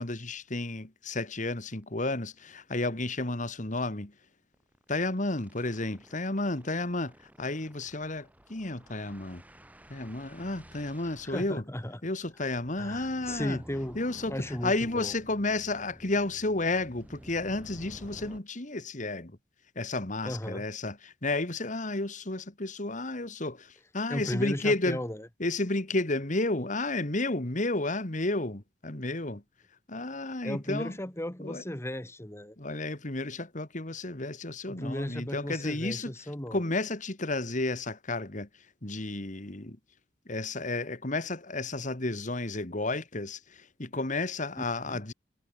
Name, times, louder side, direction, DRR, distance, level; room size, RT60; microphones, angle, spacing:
voice 1, 0.0-4.1 4.9-9.4 9.9-11.6 12.0-13.6 13.9-19.4 19.8-25.0 25.4-29.4 29.9-31.0 31.4-31.6 32.6-36.1 36.5-39.8 40.3-45.1, left 2 dB, 45° left, 2.2 m, -32 dB
sound 1, 1.7-1.8 2.2-2.3 2.6-2.8 3.1-3.2 4.5-18.4, equal, 10° right, 6.6 m, -52 dB
voice 2, 11.0-12.0 12.8-14.0 14.3-15.1 20.2-20.6 24.1-25.3 30.4-32.6 34.6-36.6 44.9-45.0, left 1 dB, 15° left, 1.9 m, -35 dB
head